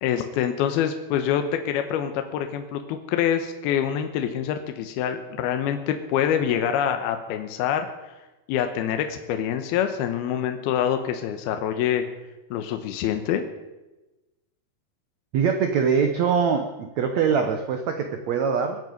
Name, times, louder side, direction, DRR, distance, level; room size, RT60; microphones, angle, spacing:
voice 1, 0.0-7.9 8.5-12.0 12.5-13.4, left 9 dB, 75° left, 7 dB, 2.8 m, -25 dB
voice 2, 15.3-18.8, right 6 dB, 85° right, 6 dB, 1.5 m, -23 dB
23.5 x 9.4 x 5.3 m, 1.1 s
omnidirectional pair, 4.7 m